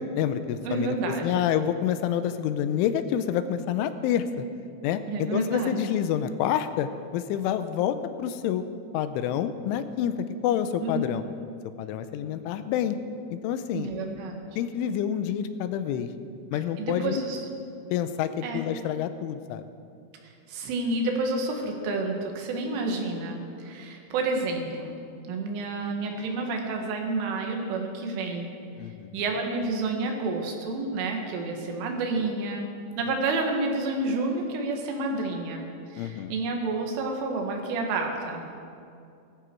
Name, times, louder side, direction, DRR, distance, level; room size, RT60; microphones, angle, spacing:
voice 1, 0.0-1.0 1.2-4.5 4.8-8.6 8.9-11.2 11.8-13.0 13.3-13.9 14.6-16.1 16.5-17.2 17.9-19.6 28.8-29.2 36.0-36.4, left 9 dB, 85° left, 10 dB, 3.2 m, -28 dB
voice 2, 0.6-1.4 5.1-5.8 10.8-11.0 13.7-14.4 16.8-17.5 18.4-18.6 20.5-25.0 25.3-28.5 29.1-32.7 33.0-35.7 35.9-38.4, right 3 dB, 85° right, 2 dB, 4.2 m, -29 dB
18.5 x 14.5 x 4.6 m, 2.5 s
omnidirectional pair, 5.5 m